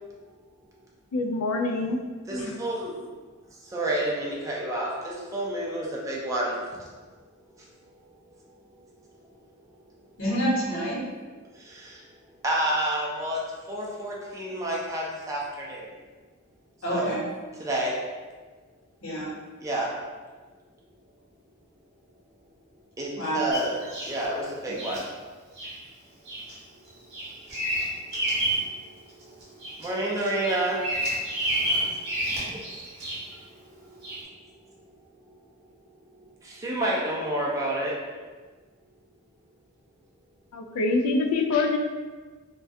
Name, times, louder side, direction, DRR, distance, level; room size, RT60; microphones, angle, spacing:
voice 1, 1.1-2.0 2.4-2.6 40.5-41.8, left 3 dB, 85° left, 4 dB, 0.3 m, -25 dB
voice 2, 2.3-3.0 3.6-6.6 11.5-12.0 12.4-15.9 16.9-17.1 17.6-18.0 19.6-19.9 23.0-23.8 24.1-25.1 28.6-28.7 29.8-30.8 31.8-32.0 34.0-34.1 35.2-35.3 36.4-38.0, right 1 dB, 15° right, -4 dB, 0.3 m, -29 dB
voice 3, 10.2-11.0 16.8-17.2 19.0-19.3 23.1-23.5 25.6-25.8, right 1 dB, 65° left, -7 dB, 0.9 m, -28 dB
Bird vocalization bird call bird song, 23.5-24.2 24.8-25.0 25.6-25.8 26.3-26.5 26.9-28.7 29.1-29.9 30.2-33.3 34.0-34.2, right 1 dB, 50° right, 0.7 m, -30 dB
2.2 x 2.2 x 2.6 m, 1.4 s
head